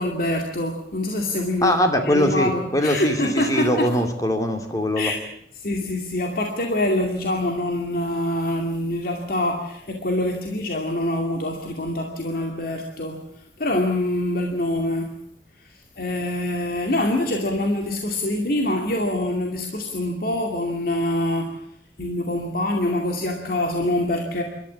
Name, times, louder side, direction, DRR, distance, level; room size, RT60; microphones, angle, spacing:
voice 1, 0.0-1.8 2.0-3.9 5.0-5.2 5.6-13.2 13.6-15.1 16.0-21.6 22.0-24.4, left 1 dB, 55° left, 2 dB, 2.4 m, -25 dB
voice 2, 1.6-5.1, left 1 dB, 20° left, 5 dB, 2.6 m, -22 dB
27.5 x 13.0 x 8.5 m, 0.70 s
head